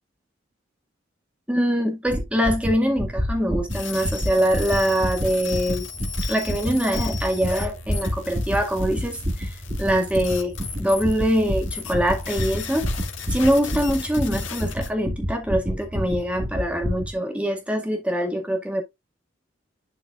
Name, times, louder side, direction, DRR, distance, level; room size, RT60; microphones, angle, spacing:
voice 1, 1.5-5.9 6.3-9.5 9.8-10.5 10.8-12.9 13.3-18.8, equal, 5° right, 1.9 m, -23 dB
sound 1, 2.1-17.1, equal, 30° right, 2.8 m, -29 dB
sound 2, 3.7-14.9, left 7 dB, 80° left, 2.0 m, -37 dB
11.5 x 4.6 x 2.4 m
head